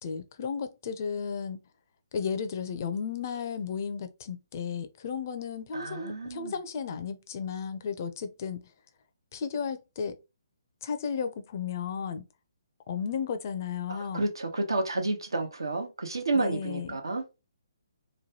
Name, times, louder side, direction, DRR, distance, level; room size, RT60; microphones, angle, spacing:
voice 1, 0.0-1.6 2.1-8.6 9.3-10.2 10.8-12.2 12.9-14.2 16.3-17.0, left 6 dB, 45° left, 0.5 m, -34 dB
voice 2, 5.7-6.5 13.9-17.2, right 2 dB, 85° right, 0.9 m, -30 dB
3.1 x 2.2 x 2.8 m
hypercardioid pair, 145°, 2 cm